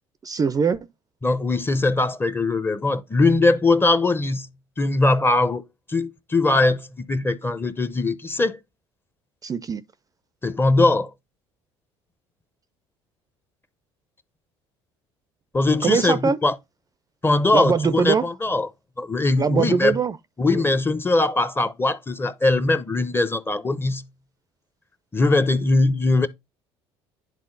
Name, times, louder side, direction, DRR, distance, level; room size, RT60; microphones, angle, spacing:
voice 1, 0.2-0.9 9.4-9.8 15.8-16.4 17.5-18.3 19.4-20.2 20.5-20.6, right 5 dB, 25° right, 0.4 m, -22 dB
voice 2, 1.2-4.5 4.8-5.6 5.9-8.6 10.4-11.1 15.5-16.6 17.2-18.7 19.0-20.0 20.4-24.1 25.1-26.3, left 2 dB, 15° left, 0.6 m, -21 dB
10.5 x 3.6 x 2.5 m
hypercardioid pair, 65°, 14 cm